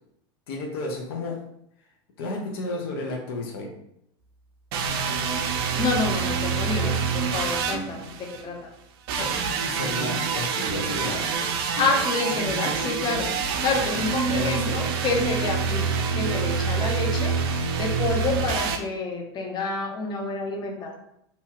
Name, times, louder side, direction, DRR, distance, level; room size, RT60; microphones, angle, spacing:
voice 1, 0.5-1.4 2.2-3.7 6.8-7.0 9.1-9.3 9.6-11.2 14.3-15.0, left 2 dB, 75° left, 2 dB, 0.6 m, -32 dB
sound 1, 4.7-8.4 9.1-18.8, right 5 dB, 70° right, 0.4 m, -26 dB
voice 2, 5.8-8.7 11.8-13.3 13.6-17.4 17.8-21.0, left 3 dB, 35° left, 1 dB, 0.7 m, -28 dB
2.8 x 2.3 x 2.8 m, 0.75 s
hypercardioid pair, 105°, 13 cm